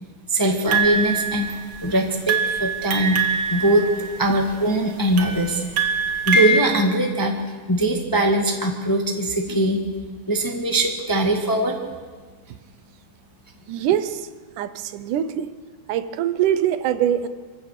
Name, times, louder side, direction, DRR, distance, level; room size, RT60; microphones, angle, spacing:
voice 1, 0.3-1.5 1.8-3.2 3.5-3.9 4.2-5.6 6.3-7.3 7.7-9.8 10.3-11.8, right 1 dB, 10° left, 2 dB, 1.1 m, -21 dB
sound 1, 0.7-1.9 2.3-4.5 5.2-6.6, right 3 dB, 50° right, 2.2 m, -23 dB
voice 2, 13.7-14.3 14.6-15.6 15.9-17.3, right 10 dB, 85° right, 12 dB, 2.4 m, -23 dB
25.5 x 15.5 x 6.7 m, 1.5 s
omnidirectional pair, 3.5 m